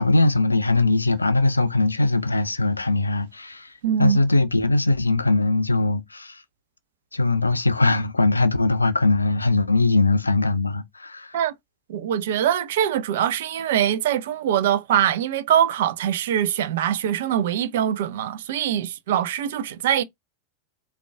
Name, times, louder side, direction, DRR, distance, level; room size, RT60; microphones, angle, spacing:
voice 1, 0.0-3.7 4.0-6.4 7.1-11.4, left 2 dB, 80° left, 0.4 m, -21 dB
voice 2, 3.8-4.2 11.3-11.5 11.9-20.0, right 10 dB, 55° right, 0.4 m, -23 dB
3.6 x 2.3 x 3.2 m
figure-of-eight pair, 90°, 0 cm